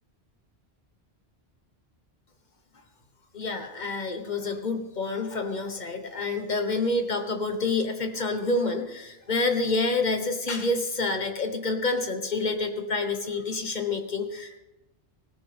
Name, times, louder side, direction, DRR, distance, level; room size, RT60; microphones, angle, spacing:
voice 1, 3.3-14.6, left 3 dB, 45° left, 6 dB, 1.4 m, -28 dB
18.5 x 16.5 x 3.5 m, 1.0 s
omnidirectional pair, 1.1 m